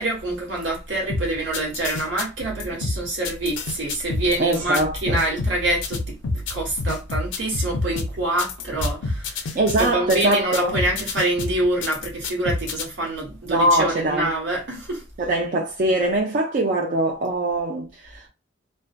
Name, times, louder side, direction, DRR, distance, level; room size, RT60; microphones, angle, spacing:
voice 1, 0.0-15.0, right 1 dB, 80° right, 1.1 m, -26 dB
sound 1, 1.1-12.8, left 3 dB, 85° left, 0.5 m, -28 dB
voice 2, 4.4-5.2 9.5-10.8 13.5-14.3 15.2-18.3, right 1 dB, 45° right, 0.4 m, -22 dB
2.5 x 2.2 x 2.4 m
head